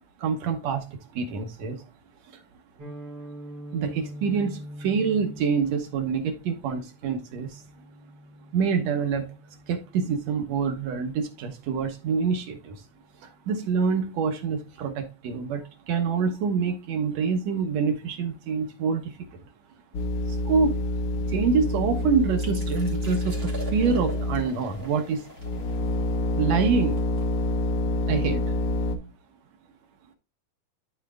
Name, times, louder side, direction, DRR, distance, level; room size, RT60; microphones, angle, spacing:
voice 1, 0.2-1.8 3.7-7.6 8.5-9.3 9.7-12.8 13.2-19.2 20.3-20.8 21.3-25.3 26.4-27.0 28.1-28.4, right 5 dB, 75° right, 2.2 m, -26 dB
Guitar, 2.8-10.6, equal, 50° right, 2.9 m, -44 dB
sound 1, 19.9-24.8 25.4-29.0, left 2 dB, 85° left, 1.0 m, -27 dB
sound 2, 22.4-27.9, right 2 dB, 20° right, 2.7 m, -44 dB
12.5 x 4.4 x 2.4 m
omnidirectional pair, 3.3 m